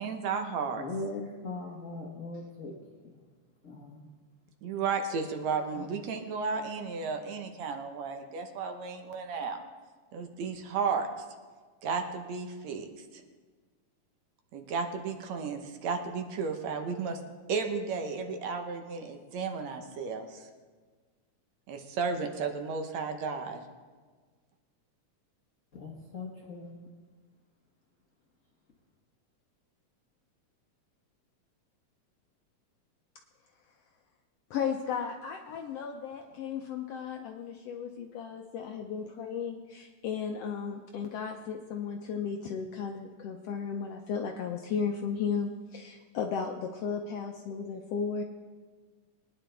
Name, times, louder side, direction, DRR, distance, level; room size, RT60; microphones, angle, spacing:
voice 1, 0.0-0.8 4.6-9.6 10.1-11.1 11.8-12.9 13.1-13.2 14.5-17.2 17.5-20.5 21.7-23.6, right 5 dB, 70° right, 5 dB, 2.2 m, -33 dB
voice 2, 0.8-2.7 3.6-4.1 25.7-26.8, left 2 dB, 55° left, -2 dB, 0.8 m, -39 dB
voice 3, 34.5-48.2, left 6 dB, 75° left, 3 dB, 1.5 m, -35 dB
22.5 x 10.0 x 3.4 m, 1.5 s
omnidirectional pair, 3.5 m